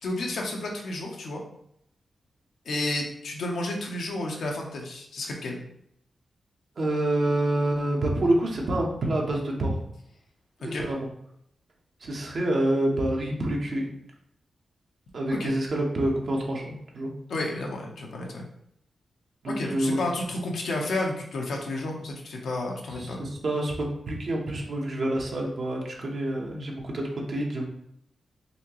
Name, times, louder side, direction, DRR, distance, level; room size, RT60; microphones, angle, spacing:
voice 1, 0.0-1.4 2.6-5.6 10.6-10.8 15.4-15.5 17.3-18.5 19.5-23.2, left 2 dB, 80° left, 0 dB, 0.8 m, -31 dB
voice 2, 6.8-9.7 10.6-11.1 12.0-13.9 15.1-17.1 19.4-20.0 23.0-27.6, right 1 dB, 60° right, -1 dB, 1.0 m, -27 dB
4.2 x 2.8 x 3.0 m, 0.75 s
cardioid pair, 75°, 0 cm